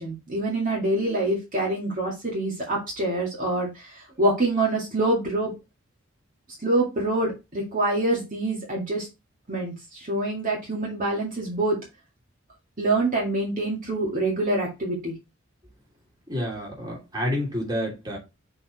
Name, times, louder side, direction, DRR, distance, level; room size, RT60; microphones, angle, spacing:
voice 1, 0.0-5.5 6.6-9.1 9.5-11.8 12.8-15.1, right 2 dB, 45° right, 2.1 m, -26 dB
voice 2, 16.3-18.2, equal, 20° right, 2.7 m, -29 dB
5.7 x 4.2 x 4.2 m
head